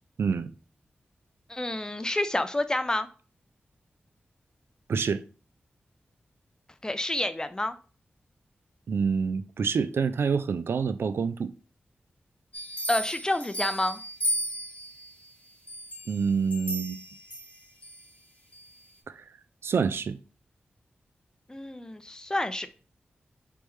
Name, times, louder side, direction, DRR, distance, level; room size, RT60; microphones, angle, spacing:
voice 1, 0.2-0.5 4.9-5.2 8.9-11.5 16.1-17.0 19.1-19.2 19.6-20.2, right 5 dB, 75° right, 0.3 m, -27 dB
voice 2, 1.5-3.1 6.8-7.7 12.9-14.0 21.5-22.7, left 1 dB, 20° left, 0.5 m, -29 dB
sound 1, 12.5-15.1 15.7-18.0 18.5-18.6, equal, 35° left, 1.2 m, -34 dB
3.4 x 3.1 x 3.1 m
cardioid pair, 45°, 4 cm